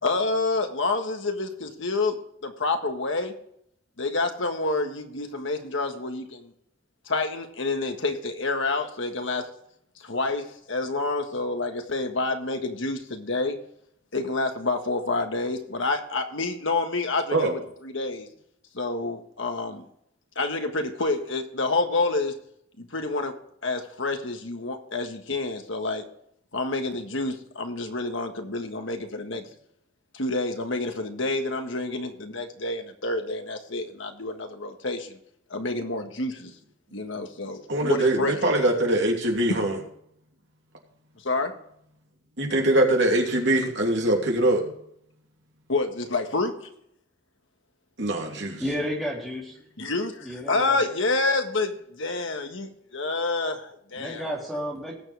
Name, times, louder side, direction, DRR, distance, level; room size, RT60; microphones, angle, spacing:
voice 1, 0.0-3.4 4.0-6.5 7.0-9.5 10.0-13.6 14.1-18.3 18.7-19.8 20.3-22.3 22.8-26.1 26.5-29.4 30.1-35.2 35.5-36.5 36.9-38.4 41.2-41.6 45.7-46.7 49.8-54.3, left 3 dB, 70° left, 5 dB, 1.6 m, -28 dB
voice 2, 37.7-39.7 42.4-44.7 48.0-48.6, right 1 dB, 60° right, 1 dB, 2.9 m, -22 dB
voice 3, 48.6-49.5 50.2-50.8 54.0-54.9, equal, ahead, -5 dB, 3.4 m, -31 dB
19.5 x 7.3 x 3.4 m, 0.72 s
head